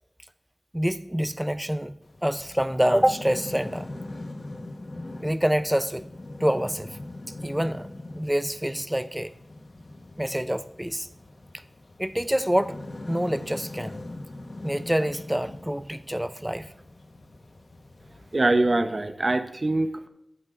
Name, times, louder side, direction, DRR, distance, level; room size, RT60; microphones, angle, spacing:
voice 1, 0.7-2.0 2.2-3.9 5.2-6.0 6.4-7.0 7.4-7.9 8.2-9.3 10.2-11.1 12.0-12.8 13.1-14.0 14.6-16.7, equal, 10° right, 13 dB, 0.5 m, -26 dB
sound 1, 2.0-18.4, left 2 dB, 70° left, 1.1 m, -41 dB
voice 2, 18.3-20.1, right 2 dB, 55° right, 8 dB, 0.7 m, -23 dB
15.0 x 8.4 x 2.5 m, 0.82 s
wide cardioid pair, 50°, 0 cm